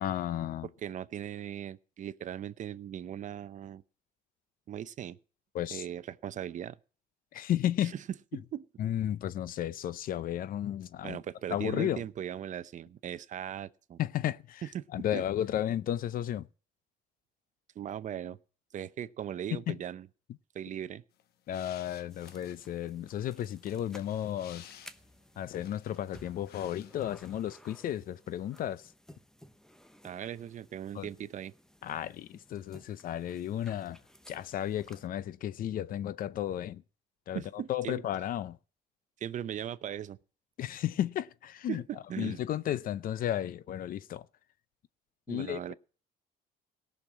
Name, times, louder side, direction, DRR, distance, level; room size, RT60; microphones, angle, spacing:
voice 1, 0.0-0.7 5.5-5.8 7.3-7.9 8.8-11.2 11.5-12.0 14.0-14.6 14.9-16.4 19.5-19.8 21.5-24.7 25.4-28.8 30.9-31.1 31.8-34.0 34.3-36.8 37.3-38.6 40.6-41.8 42.2-44.3 45.3-45.7, left 11 dB, 55° left, 0.6 m, -33 dB
voice 2, 0.8-3.8 4.7-5.2 5.7-6.8 7.8-8.0 8.3-8.6 11.0-14.0 14.6-14.8 15.1-15.2 17.8-18.4 18.7-20.1 20.5-21.0 30.0-31.5 37.3-38.0 39.2-40.2 41.7-42.4 45.3-45.7, right 10 dB, 45° right, 0.6 m, -39 dB
sound 1, 21.1-27.3 27.6-28.1, left 10 dB, 70° left, 1.0 m, -56 dB
sound 2, 22.1-35.1, equal, 5° left, 0.9 m, -57 dB
17.5 x 6.5 x 7.3 m
cardioid pair, 110°, 17 cm